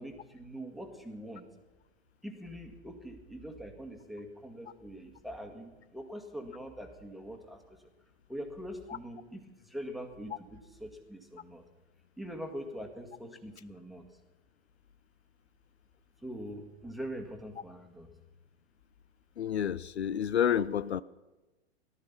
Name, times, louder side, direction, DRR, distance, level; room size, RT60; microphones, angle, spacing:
voice 1, 0.0-1.5 2.2-7.8 8.3-11.6 12.2-14.1 16.2-18.1, equal, ahead, 5 dB, 1.8 m, -43 dB
voice 2, 19.4-21.0, left 9 dB, 75° left, 18 dB, 0.5 m, -29 dB
18.0 x 12.5 x 5.8 m, 1.1 s
figure-of-eight pair, 95°, 33 cm